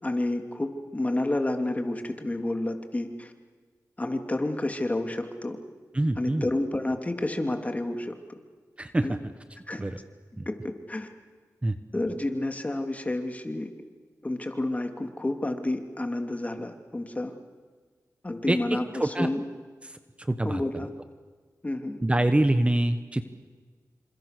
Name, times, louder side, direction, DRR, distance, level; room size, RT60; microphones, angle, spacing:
voice 1, 0.0-3.3 4.0-5.6 6.1-8.1 9.0-9.2 9.7-9.8 10.5-11.1 11.9-13.7 14.2-17.3 18.2-19.4 20.4-20.9 21.6-22.0, left 1 dB, 25° left, 6 dB, 2.9 m, -30 dB
voice 2, 5.9-6.4 8.8-9.2 9.8-10.0 10.4-10.5 11.6-11.8 18.5-18.6 19.0-19.3 20.3-20.6 22.0-23.2, right 1 dB, 20° right, 9 dB, 1.3 m, -24 dB
28.5 x 26.5 x 6.8 m, 1.5 s
wide cardioid pair, 80°, 6 cm